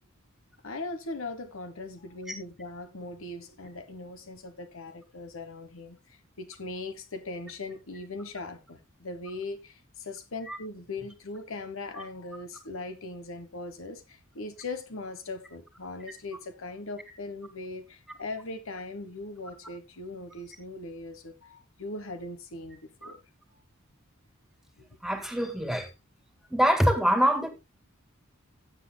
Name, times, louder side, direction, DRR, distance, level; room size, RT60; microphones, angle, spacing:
voice 1, 0.6-23.2 24.8-24.9, left 2 dB, 70° left, 1.3 m, -40 dB
voice 2, 25.0-25.9 26.5-27.5, equal, ahead, 2.0 m, -24 dB
17.0 x 7.6 x 2.3 m
head